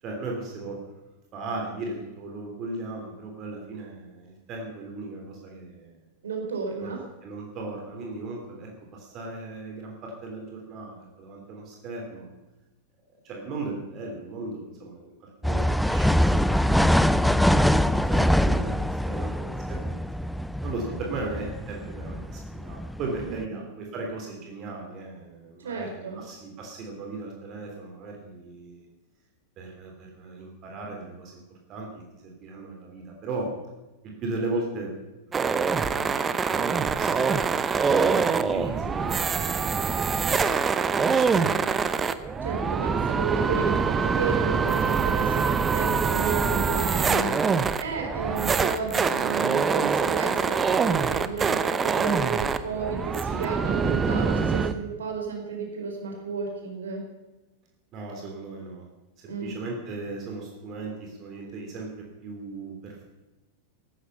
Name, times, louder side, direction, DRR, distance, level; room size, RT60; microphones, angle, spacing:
voice 1, 0.0-0.9 1.3-6.0 6.8-6.9 7.2-12.4 13.2-20.0 20.6-28.8 29.6-31.3 31.7-33.5 34.0-34.9 35.3-37.2 38.3-39.9 40.2-40.8 41.1-41.5 57.9-58.9 59.2-63.0, right 3 dB, 35° right, 0 dB, 3.3 m, -37 dB
voice 2, 6.2-7.0 23.2-23.6 25.6-26.2 37.9-38.2 42.4-57.0 59.3-59.5, right 5 dB, 65° right, 1 dB, 4.4 m, -32 dB
sound 1, 15.4-23.4, equal, ahead, 0.5 m, -24 dB
sound 2, 35.3-54.7, right 5 dB, 20° right, 0.9 m, -24 dB
15.0 x 12.5 x 5.6 m, 1.1 s
figure-of-eight pair, 90°, 0 cm